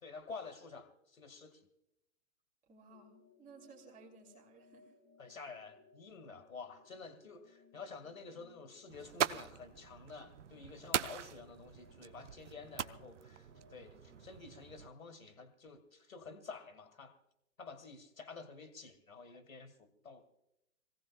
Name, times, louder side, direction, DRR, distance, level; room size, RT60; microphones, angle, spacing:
voice 1, 0.0-1.7 5.2-17.2 17.6-20.2, left 4 dB, 75° left, 9 dB, 2.2 m, -50 dB
voice 2, 2.7-4.9, right 3 dB, 20° right, 1 dB, 2.9 m, -58 dB
sound 1, 2.9-14.8, left 3 dB, 15° left, 1.6 m, -65 dB
sound 2, 8.9-14.9, right 9 dB, 60° right, 0.7 m, -41 dB
25.5 x 17.0 x 2.3 m, 0.85 s
figure-of-eight pair, 105°, 41 cm